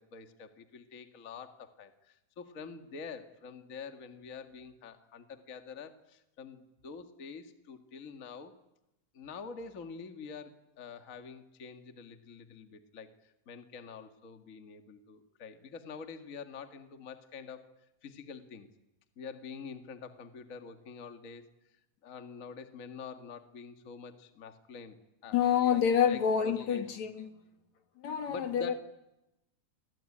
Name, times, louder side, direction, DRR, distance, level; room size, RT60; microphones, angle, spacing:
voice 1, 0.0-8.5 9.1-17.7 18.0-18.7 19.2-21.4 22.0-25.0 25.2-26.8 28.2-28.7, left 5 dB, 30° left, 1.9 m, -46 dB
voice 2, 25.3-27.3 28.0-28.8, left 8 dB, 65° left, 3.3 m, -28 dB
27.5 x 23.0 x 8.8 m
omnidirectional pair, 3.5 m